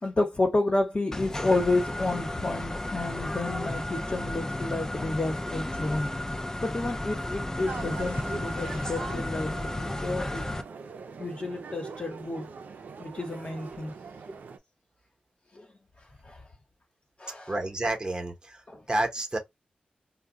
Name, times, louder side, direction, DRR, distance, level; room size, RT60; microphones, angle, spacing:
voice 1, 0.0-6.1 6.6-10.4 11.2-12.5 13.0-13.9 15.5-15.7 16.2-16.4 17.2-17.5 18.7-18.8, left 2 dB, 40° left, 1.1 m, -30 dB
sound 1, 1.1-10.6, left 1 dB, 15° left, 0.4 m, -33 dB
sound 2, 7.6-14.6, right 5 dB, 80° right, 0.5 m, -42 dB
voice 2, 17.5-18.6 18.9-19.4, right 1 dB, 30° right, 0.9 m, -29 dB
2.3 x 2.2 x 3.8 m
cardioid pair, 55°, 3 cm